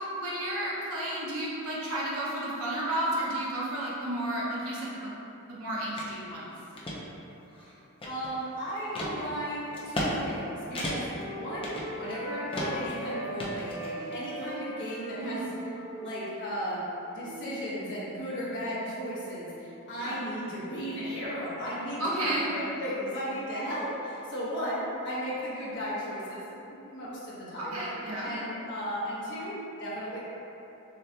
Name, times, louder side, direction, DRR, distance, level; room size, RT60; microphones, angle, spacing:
voice 1, 0.0-5.1 5.5-6.5 15.2-15.4 20.0-20.2 22.0-22.5 27.6-28.3, right 1 dB, 85° right, -6 dB, 0.9 m, -32 dB
sound 1, 6.0-6.1 6.6-7.0 7.5-8.4 9.0-9.1 9.7-10.1 10.4-10.5 10.8-11.2 11.6-12.2 12.5-12.9 13.4-14.2, left 1 dB, 25° left, 0.6 m, -34 dB
voice 2, 8.0-11.1 11.3-15.5 16.0-16.8 17.1-26.4 26.7-27.8 28.2-30.2, equal, 55° left, -8 dB, 1.1 m, -35 dB
Wind instrument woodwind instrument, 9.9-13.4 13.7-18.2, right 1 dB, 10° right, 1.1 m, -41 dB
6.4 x 2.8 x 2.2 m, 2.9 s
head